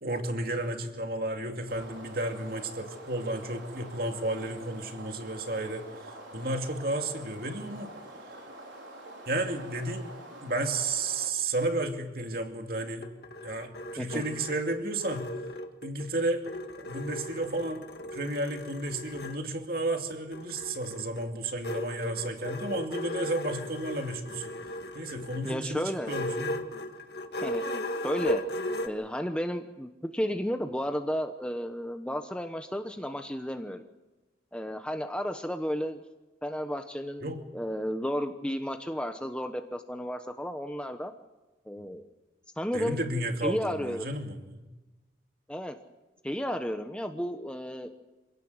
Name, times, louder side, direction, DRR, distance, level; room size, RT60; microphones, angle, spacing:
voice 1, 0.0-7.9 8.3-8.4 9.3-10.1 10.4-13.1 13.4-15.3 15.8-16.4 16.8-24.5 24.9-26.7 37.2-37.4 41.8-41.9 42.7-44.7, right 2 dB, 55° right, 4 dB, 2.5 m, -32 dB
sound 1, 1.7-11.3, right 1 dB, 85° right, 4.7 m, -46 dB
sound 2, 12.8-16.1 16.4-19.4 20.3-28.9, equal, 55° left, 2.0 m, -36 dB
voice 2, 25.4-26.1 27.4-27.6 28.0-28.4 28.8-33.8 34.5-36.0 36.4-41.1 41.7-42.0 42.6-43.0 43.4-44.1 45.5-45.8 46.2-48.0, equal, 5° left, 6 dB, 1.0 m, -33 dB
26.5 x 17.5 x 8.0 m, 1.1 s
head